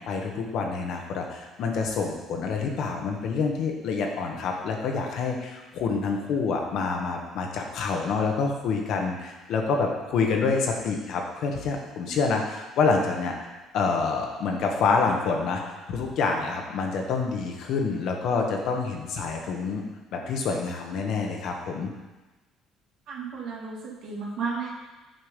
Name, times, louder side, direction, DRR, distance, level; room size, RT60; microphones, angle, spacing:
voice 1, 0.0-13.3 13.7-15.6 15.9-19.8 20.1-21.9, left 4 dB, 65° left, 2 dB, 1.3 m, -27 dB
voice 2, 23.1-24.7, right 5 dB, 70° right, -4 dB, 2.2 m, -33 dB
7.8 x 4.5 x 5.2 m, 1.1 s
cardioid pair, 100°, 0 cm